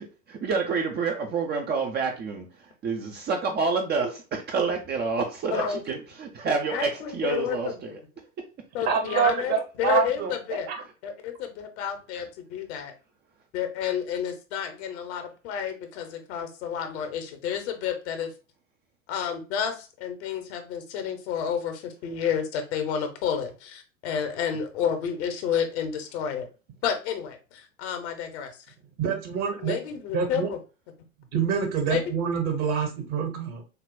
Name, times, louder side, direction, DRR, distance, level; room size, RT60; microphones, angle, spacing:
voice 1, 0.3-2.5 2.8-8.0, right 4 dB, 25° right, 0.7 m, -28 dB
voice 2, 5.5-5.8 6.7-8.0 8.7-10.7 11.0-12.9 13.5-18.3 19.1-26.5 26.8-28.5 29.6-30.6 31.9-32.0, left 8 dB, 55° left, 1.1 m, -30 dB
voice 3, 8.9-10.3 10.7-10.8 29.0-29.7 30.1-30.5 31.3-33.6, right 6 dB, 40° right, 1.3 m, -26 dB
6.6 x 2.4 x 2.2 m
figure-of-eight pair, 90°, 40 cm